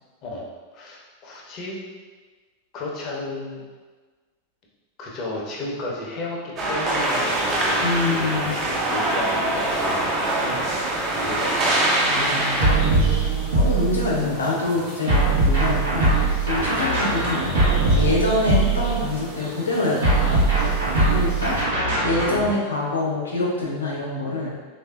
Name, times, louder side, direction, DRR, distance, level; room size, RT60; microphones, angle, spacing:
voice 1, 0.7-1.8 2.7-3.6 5.0-12.3 13.6-13.8 21.8-22.1, left 2 dB, 45° left, -2 dB, 0.7 m, -33 dB
sound 1, 6.6-12.6, right 1 dB, 35° right, 0.6 m, -23 dB
sound 2, 7.0-21.6, right 1 dB, 55° right, 1.0 m, -38 dB
voice 2, 7.7-8.5 12.1-12.8 13.5-16.1 16.5-17.6 17.9-20.5 21.1-21.5 22.0-24.5, left 2 dB, 85° left, -4 dB, 0.7 m, -25 dB
sound 3, 12.6-14.3 15.1-19.3 20.0-22.5, right 2 dB, 85° right, 0.9 m, -21 dB
3.3 x 2.6 x 2.3 m, 1.4 s
hypercardioid pair, 95°, 0 cm